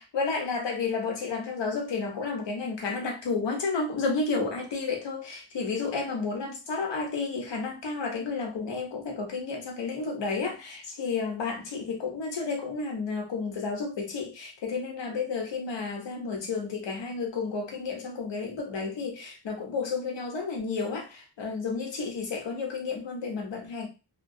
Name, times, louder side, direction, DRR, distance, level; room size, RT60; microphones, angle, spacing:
voice 1, 0.0-23.9, left 4 dB, 85° left, 0.9 m, -31 dB
2.9 x 2.1 x 2.6 m
wide cardioid pair, 145°, 42 cm